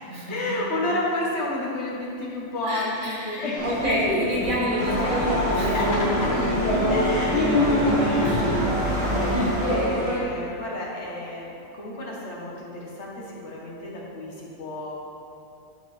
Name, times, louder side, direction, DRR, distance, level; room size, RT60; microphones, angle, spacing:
voice 1, 0.3-4.0 5.7-6.3 6.9-14.9, left 1 dB, 60° left, -3 dB, 1.4 m, -31 dB
voice 2, 2.7-5.8 6.2-6.3 8.2-8.5, equal, 80° right, -7 dB, 2.1 m, -29 dB
sound 1, 3.6-10.2, left 1 dB, 25° left, 1.2 m, -26 dB
sound 2, 4.8-10.1, equal, 25° right, 1.2 m, -25 dB
10.5 x 3.8 x 3.2 m, 2.6 s
omnidirectional pair, 1.4 m